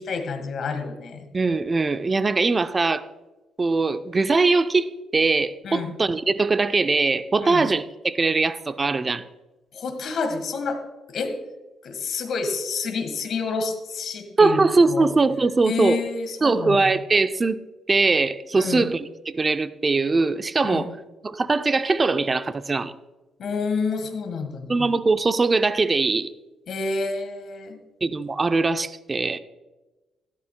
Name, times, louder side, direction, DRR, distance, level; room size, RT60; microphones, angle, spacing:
voice 1, 0.0-1.3 5.6-5.9 7.4-7.7 9.7-10.8 11.1-11.3 11.8-15.1 15.6-16.9 18.5-18.9 20.6-20.9 23.4-24.9 26.7-27.8, left 4 dB, 60° left, 7 dB, 1.6 m, -28 dB
voice 2, 1.3-3.0 3.6-9.2 14.4-16.0 16.4-17.6 17.9-20.9 21.2-22.9 24.7-26.3 28.0-29.4, right 3 dB, 30° right, 12 dB, 0.5 m, -21 dB
13.0 x 12.0 x 2.2 m, 1.1 s
cardioid pair, 90°, 0 cm